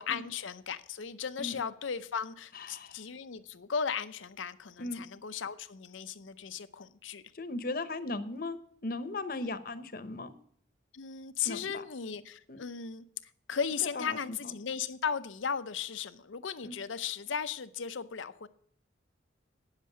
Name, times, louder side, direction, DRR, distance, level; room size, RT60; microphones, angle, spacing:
voice 1, 0.0-7.2 9.4-9.5 10.9-13.0 13.5-18.5, left 7 dB, 90° left, 12 dB, 0.7 m, -36 dB
voice 2, 2.5-3.0 4.8-5.0 7.3-10.3 11.4-11.8 12.5-12.6 13.8-14.4 16.6-16.7, left 2 dB, 50° left, 11 dB, 0.9 m, -37 dB
9.6 x 7.4 x 6.3 m, 0.63 s
head